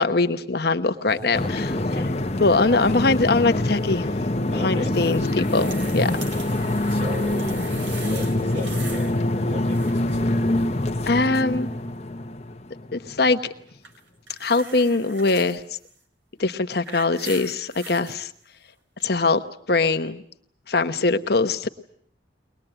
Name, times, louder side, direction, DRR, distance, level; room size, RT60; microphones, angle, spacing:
voice 1, 0.0-1.7 2.4-4.1 4.5-5.2 5.5-6.1 11.1-11.7 12.9-13.4 14.4-15.6 16.4-18.3 19.0-19.4 19.7-20.2 20.7-21.7, left 3 dB, 55° left, 8 dB, 1.0 m, -22 dB
voice 2, 1.1-2.1 4.5-5.3 6.9-10.7, equal, 35° right, 3 dB, 4.1 m, -37 dB
sound 1, 1.3-13.2, left 1 dB, 35° left, 1.1 m, -25 dB
sound 2, 4.9-9.2 9.4-10.1 13.8-15.6 16.4-18.2 19.0-19.1, right 4 dB, 80° right, 3.9 m, -41 dB
23.0 x 20.0 x 9.0 m, 0.63 s
head